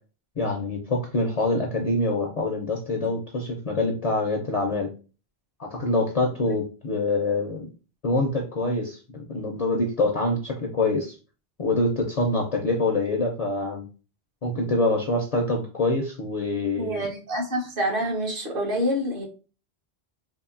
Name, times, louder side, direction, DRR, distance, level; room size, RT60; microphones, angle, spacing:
voice 1, 0.4-4.9 5.6-7.7 8.0-11.2 11.6-13.8 14.4-17.0, left 2 dB, 55° left, 0 dB, 0.4 m, -25 dB
voice 2, 16.8-19.3, equal, 60° right, 0 dB, 0.9 m, -27 dB
2.8 x 2.5 x 2.4 m, 0.35 s
omnidirectional pair, 1.1 m